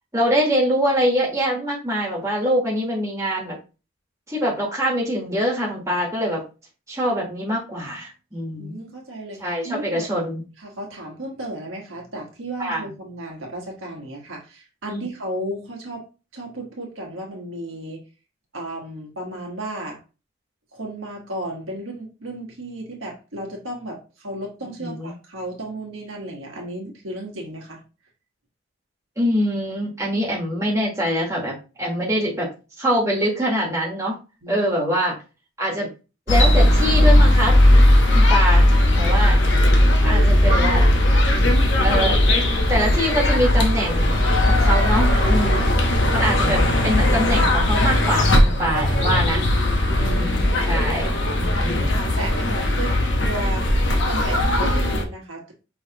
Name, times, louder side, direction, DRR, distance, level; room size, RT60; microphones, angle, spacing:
voice 1, 0.1-3.6 4.3-6.4 6.9-8.8 9.4-10.4 12.6-12.8 14.9-15.0 24.6-25.1 29.2-32.5 32.8-34.2 34.5-35.1 35.6-35.9 36.3-37.5 38.1-38.6 39.0-39.4 40.0-40.9 41.7-42.2 42.7-45.8 46.1-49.4 50.0-52.0, equal, 15° right, -3 dB, 1.3 m, -24 dB
voice 2, 8.6-10.0 10.6-16.0 16.3-18.0 18.5-20.0 20.7-27.8 34.4-34.7 38.9-39.2 45.8-46.1 50.0-50.8 51.1-51.4 52.2-52.9 53.2-53.7 54.0-55.4, right 1 dB, 80° right, 0 dB, 1.5 m, -34 dB
sound 1, 36.3-55.0, left 1 dB, 60° left, 0.9 m, -17 dB
5.6 x 3.1 x 2.9 m, 0.32 s
head